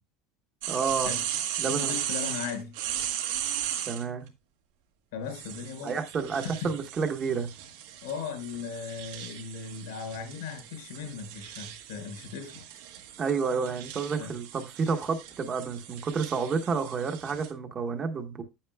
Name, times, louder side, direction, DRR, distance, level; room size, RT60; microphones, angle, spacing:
sound 1, 0.6-4.0 5.3-17.5, right 10 dB, 80° right, 1.7 m, -37 dB
voice 1, 0.7-1.1 1.6-2.0 3.9-4.3 5.8-7.5 13.2-18.4, right 5 dB, 20° right, 1.0 m, -30 dB
voice 2, 1.6-2.8 5.1-6.0 6.3-6.7 8.0-12.7 14.2-14.3, left 6 dB, 85° left, 4.4 m, -37 dB
9.5 x 8.8 x 2.2 m
cardioid pair, 165°, 0 cm